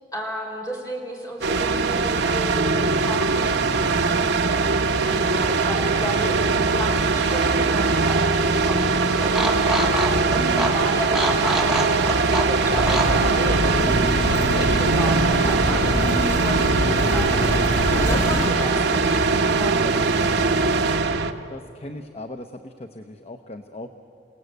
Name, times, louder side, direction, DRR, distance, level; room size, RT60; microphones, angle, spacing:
voice 1, 0.1-3.5 5.0-10.0 10.6-20.8, equal, 20° left, -1 dB, 4.6 m, -33 dB
sound 1, 1.4-21.3, right 4 dB, 65° right, 0.9 m, -21 dB
sound 2, 7.0-15.1, right 1 dB, 5° right, 2.0 m, -29 dB
voice 2, 10.3-10.7 16.0-16.4 18.1-18.2 19.8-19.9 21.5-23.9, left 1 dB, 35° left, 6 dB, 0.8 m, -35 dB
sound 3, 12.7-18.5, equal, 65° left, 2.4 m, -25 dB
28.5 x 18.0 x 8.1 m, 2.6 s
head